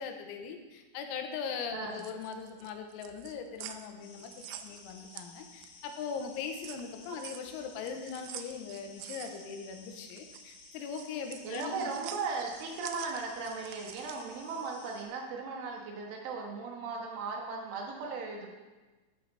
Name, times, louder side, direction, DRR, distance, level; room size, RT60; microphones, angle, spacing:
voice 1, 0.0-11.9, left 6 dB, 90° left, 5 dB, 3.8 m, -40 dB
sound 1, 1.8-5.9 6.3-14.4, right 11 dB, 90° right, 2.6 m, -47 dB
sound 2, 4.0-15.0, left 4 dB, 65° left, 3.3 m, -55 dB
voice 2, 11.4-18.5, right 4 dB, 70° right, 0 dB, 3.7 m, -37 dB
13.0 x 9.3 x 4.1 m, 1.2 s
omnidirectional pair, 6.0 m